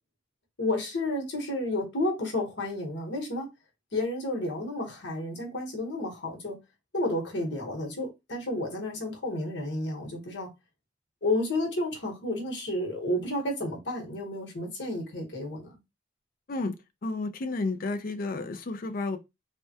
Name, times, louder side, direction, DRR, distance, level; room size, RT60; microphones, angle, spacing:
voice 1, 0.6-3.5 3.9-6.6 6.9-10.5 11.2-15.8, left 1 dB, 70° left, 1.1 m, -31 dB
voice 2, 17.0-19.2, left 3 dB, 50° left, 0.5 m, -31 dB
3.3 x 2.1 x 2.8 m
head